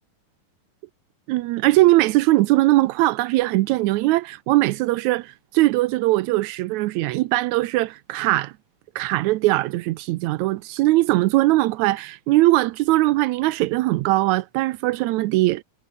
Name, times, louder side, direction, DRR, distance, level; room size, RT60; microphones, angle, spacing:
voice 1, 1.3-8.5 8.9-15.6, right 18 dB, 85° right, 1.7 m, -20 dB
omnidirectional pair, 3.9 m